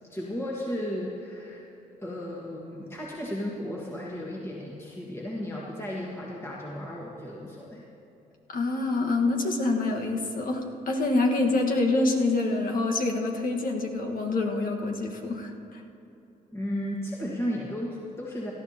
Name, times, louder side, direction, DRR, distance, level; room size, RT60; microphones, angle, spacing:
voice 1, 0.1-1.6 2.0-7.8 16.5-18.5, equal, 15° left, -4 dB, 1.7 m, -34 dB
voice 2, 8.5-15.5, left 2 dB, 55° left, 1 dB, 1.5 m, -26 dB
18.0 x 13.0 x 2.9 m, 2.8 s
supercardioid pair, 70°, 17 cm